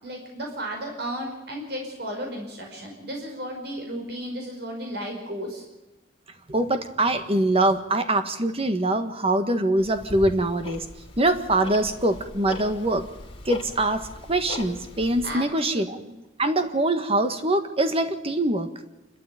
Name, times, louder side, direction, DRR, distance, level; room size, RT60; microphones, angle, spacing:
voice 1, 0.0-5.6 15.2-16.1, equal, 65° right, 1 dB, 5.2 m, -34 dB
voice 2, 6.5-10.8 11.2-13.0 13.4-14.0 14.3-16.0 16.4-18.7, right 1 dB, 35° right, 8 dB, 1.7 m, -23 dB
Tick-tock, 9.8-15.4, left 1 dB, 30° left, 3.5 m, -40 dB
27.0 x 13.0 x 9.2 m, 1.0 s
head